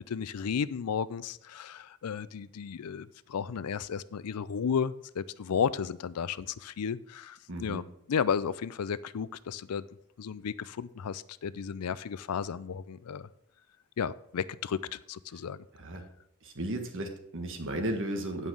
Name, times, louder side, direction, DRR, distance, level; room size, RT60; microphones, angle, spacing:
voice 1, 0.1-9.8 10.2-13.3 14.0-15.6, left 7 dB, 85° left, 0.4 m, -33 dB
voice 2, 7.5-7.8 15.8-16.0 16.4-18.5, right 1 dB, 60° right, 1.5 m, -34 dB
9.1 x 5.5 x 6.3 m
head